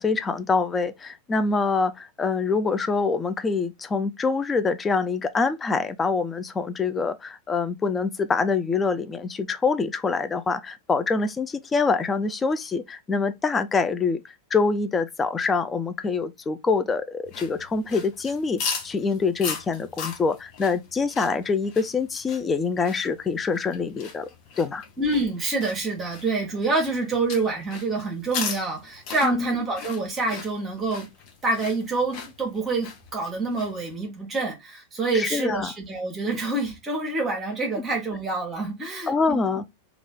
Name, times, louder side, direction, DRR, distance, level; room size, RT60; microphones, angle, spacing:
voice 1, 0.0-14.2 14.5-24.3 24.6-24.8 29.2-29.5 35.1-35.7 39.1-39.6, left 4 dB, 15° left, 0.4 m, -25 dB
sound 1, 17.2-33.9, left 6 dB, 40° left, 0.8 m, -38 dB
voice 2, 25.0-31.1 31.4-39.4, right 3 dB, 20° right, 1.1 m, -27 dB
3.1 x 2.4 x 3.5 m
figure-of-eight pair, 90°, 0 cm